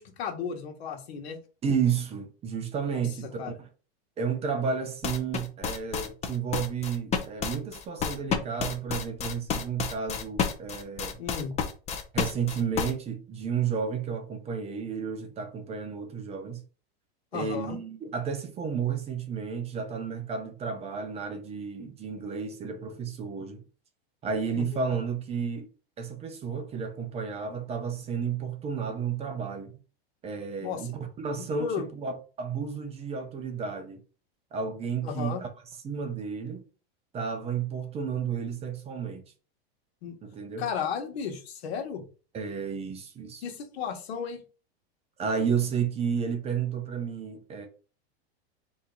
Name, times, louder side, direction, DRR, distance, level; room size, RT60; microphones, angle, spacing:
voice 1, 0.0-1.4 2.9-3.0 3.4-3.5 11.2-11.5 17.3-17.8 24.5-24.8 30.6-30.9 31.4-31.8 35.0-35.4 40.0-40.1 40.6-42.0 43.4-44.4, left 7 dB, 80° left, 1.3 m, -34 dB
voice 2, 1.6-3.5 4.2-11.2 12.1-16.6 17.3-23.6 24.2-25.7 26.0-29.8 30.2-34.0 34.5-35.5 35.8-36.6 37.1-39.2 40.2-40.7 42.3-43.4 45.2-47.7, right 6 dB, 20° right, 0.6 m, -32 dB
sound 1, 5.0-12.9, left 6 dB, 20° left, 0.6 m, -30 dB
3.9 x 2.9 x 3.7 m
supercardioid pair, 140°, 31 cm